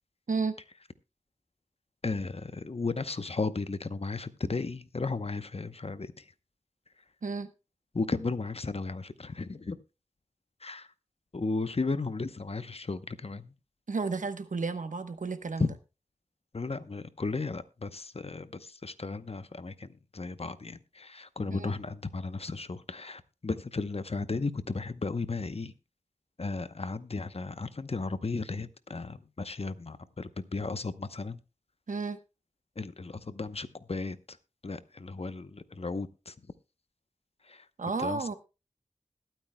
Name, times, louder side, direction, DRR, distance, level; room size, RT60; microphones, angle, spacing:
voice 1, 2.0-6.2 7.9-9.8 10.6-10.9 11.3-13.5 15.6-15.7 16.5-25.7 26.4-31.4 32.8-34.4 34.6-36.3 37.5-37.6 38.0-38.3, left 3 dB, 50° left, 0.8 m, -35 dB
voice 2, 13.9-15.7 21.5-21.7 31.9-32.2 37.8-38.3, right 4 dB, 85° right, 1.0 m, -32 dB
21.0 x 9.2 x 2.2 m
wide cardioid pair, 50°, 13 cm